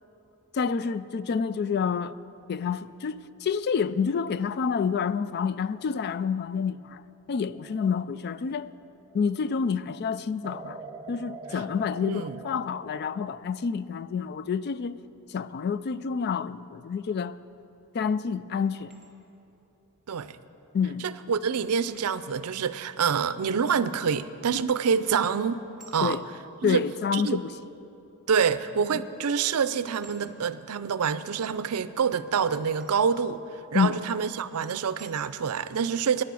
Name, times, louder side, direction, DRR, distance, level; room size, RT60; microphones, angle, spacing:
voice 1, 0.5-2.1 2.5-7.0 7.3-8.7 9.1-10.8 11.1-15.0 15.3-17.4 17.9-18.9 20.7-21.1 26.0-26.2 26.6-27.6 28.9-29.0 33.7-34.0, left 6 dB, 45° left, 0.3 m, -28 dB
sound 1, 7.5-9.3 10.4-13.3, right 3 dB, 15° right, 0.7 m, -44 dB
voice 2, 12.0-12.4 20.1-20.4 21.0-26.2 26.6-26.8 27.1-27.4 28.3-33.4 33.7-36.2, right 6 dB, 80° right, 0.5 m, -27 dB
sound 2, 18.7-19.1 20.6-20.7 21.9-22.3 24.6-24.9 25.8-26.1 27.2-27.3 28.6-28.8 29.1-29.4 30.0-30.4 32.8-33.1 33.9-34.0 35.0-35.3, right 3 dB, ahead, 2.5 m, -54 dB
15.0 x 10.0 x 6.2 m
head